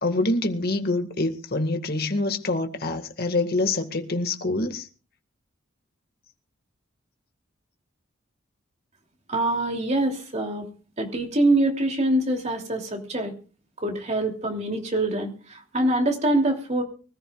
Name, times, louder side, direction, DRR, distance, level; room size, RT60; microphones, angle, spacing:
voice 1, 0.0-4.9, left 2 dB, 50° left, 1.9 m, -26 dB
voice 2, 9.3-10.7 11.0-13.3 13.8-16.8, right 1 dB, 35° right, 3.0 m, -24 dB
24.5 x 14.0 x 2.4 m
head